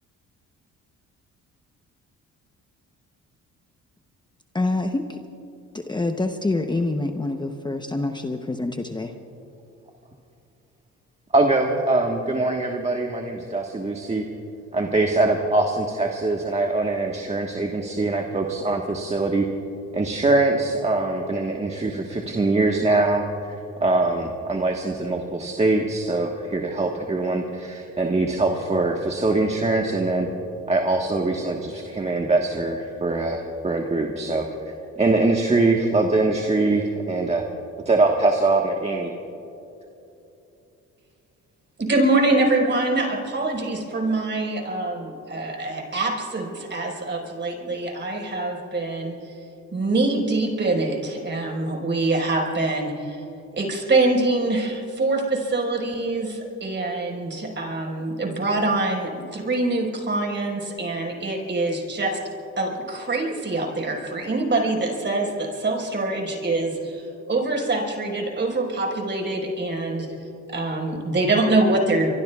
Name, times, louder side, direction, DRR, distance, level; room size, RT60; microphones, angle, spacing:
voice 1, 4.5-5.2 5.7-9.1, left 2 dB, 15° left, 5 dB, 0.8 m, -26 dB
voice 2, 11.3-14.2 14.7-19.5 19.9-30.3 30.7-37.5 37.8-39.1, right 2 dB, 20° right, 1 dB, 1.4 m, -23 dB
voice 3, 41.8-49.3 49.7-53.2 53.5-62.2 62.6-70.1 70.5-72.1, right 2 dB, 40° right, 0 dB, 4.9 m, -24 dB
25.0 x 24.0 x 2.4 m, 2.8 s
cardioid pair, 90°, 30 cm